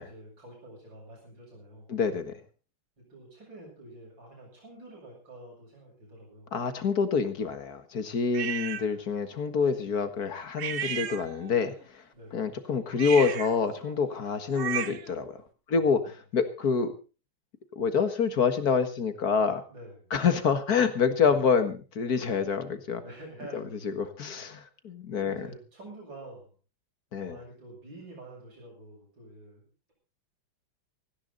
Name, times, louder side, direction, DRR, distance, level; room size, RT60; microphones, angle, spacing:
voice 1, 0.0-1.9 3.1-6.5 12.1-12.5 15.7-16.1 19.7-20.1 21.2-21.4 23.0-23.9 24.4-24.5 25.2-26.5 27.2-29.9, right 1 dB, 70° right, -2 dB, 8.1 m, -48 dB
voice 2, 1.9-2.4 6.5-12.0 12.3-15.4 15.7-16.9 17.7-19.6 20.1-23.0 23.5-25.5 27.1-27.4, left 5 dB, 55° left, 10 dB, 2.1 m, -27 dB
sound 1, 8.3-8.9 10.6-11.6 12.9-15.2, right 9 dB, 50° right, 1.0 m, -35 dB
17.5 x 15.5 x 4.0 m, 0.34 s
omnidirectional pair, 2.1 m